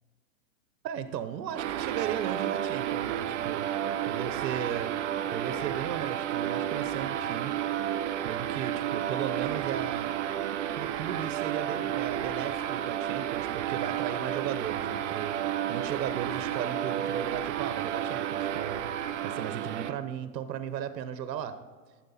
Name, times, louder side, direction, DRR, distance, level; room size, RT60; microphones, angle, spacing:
voice 1, 0.8-3.7 4.1-7.6 8.2-21.7, right 9 dB, 80° right, 11 dB, 0.9 m, -36 dB
sound 1, 1.6-19.9, right 10 dB, 45° right, 0.5 m, -31 dB
12.5 x 7.8 x 4.1 m, 1.5 s
supercardioid pair, 160°, 50 cm